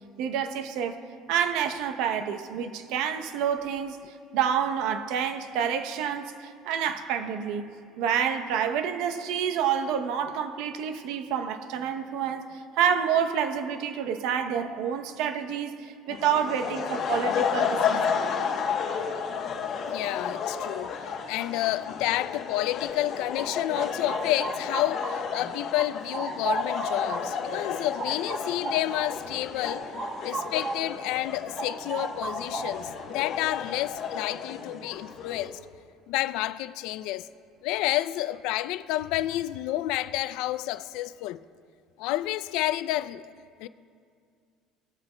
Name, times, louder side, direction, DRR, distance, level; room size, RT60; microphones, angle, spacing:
voice 1, 0.2-1.0 1.3-4.0 4.3-7.6 8.0-18.2, right 8 dB, 70° right, 0.7 m, -28 dB
sound 1, 16.1-35.5, left 6 dB, 45° left, 0.9 m, -32 dB
voice 2, 19.9-21.0 21.3-29.9 30.2-35.6 36.1-37.3 37.6-41.4 42.0-43.2 43.6-43.7, left 15 dB, 75° left, 0.3 m, -30 dB
sound 2, 22.9-25.4 25.7-31.0 31.3-33.0, right 3 dB, 30° right, 0.7 m, -36 dB
19.5 x 8.0 x 2.2 m
cardioid pair, 135°, 0 cm